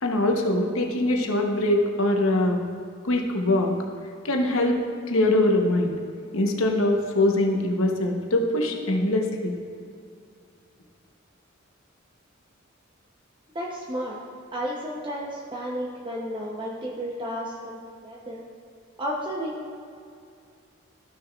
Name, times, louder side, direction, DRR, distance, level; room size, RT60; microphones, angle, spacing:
voice 1, 0.0-2.7 3.0-3.7 4.2-4.8 5.1-6.0 6.3-9.5, left 1 dB, 80° left, 2 dB, 0.9 m, -23 dB
voice 2, 13.5-14.2 14.5-18.4 19.0-19.7, equal, 25° right, -3 dB, 0.7 m, -32 dB
13.0 x 6.4 x 2.4 m, 2.4 s
head